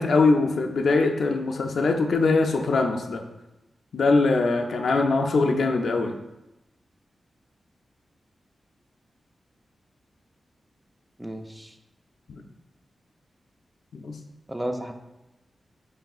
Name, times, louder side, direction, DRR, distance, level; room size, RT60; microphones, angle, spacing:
voice 1, 0.0-3.2 3.9-6.1 13.9-14.2, left 3 dB, 80° left, 4 dB, 0.4 m, -22 dB
voice 2, 11.2-11.8 14.5-14.9, right 1 dB, 10° right, 5 dB, 0.3 m, -32 dB
5.4 x 3.1 x 2.3 m, 0.96 s
wide cardioid pair, 105°, 0 cm